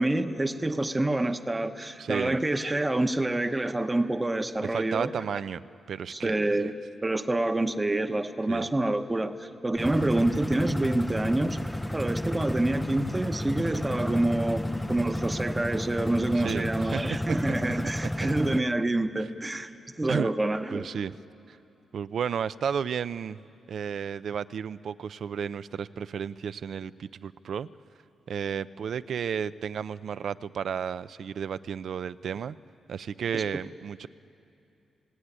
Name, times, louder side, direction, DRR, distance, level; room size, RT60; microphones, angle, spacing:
voice 1, 0.0-5.4 6.1-6.7 7.0-11.6 11.9-19.7 20.0-20.9 33.3-33.4, right 2 dB, 15° right, 7 dB, 1.0 m, -27 dB
voice 2, 2.0-2.4 4.6-6.7 8.5-8.7 16.3-17.0 17.3-17.4 17.6-17.7 20.1-20.3 20.7-21.1 21.5-21.6 21.9-23.4 23.7-27.7 28.3-32.6 32.9-34.1, right 7 dB, 60° right, 15 dB, 0.5 m, -33 dB
sound 1, 9.8-18.6, left 1 dB, 5° left, 0.5 m, -32 dB
29.5 x 18.0 x 9.8 m, 2.8 s
wide cardioid pair, 135°, 0 cm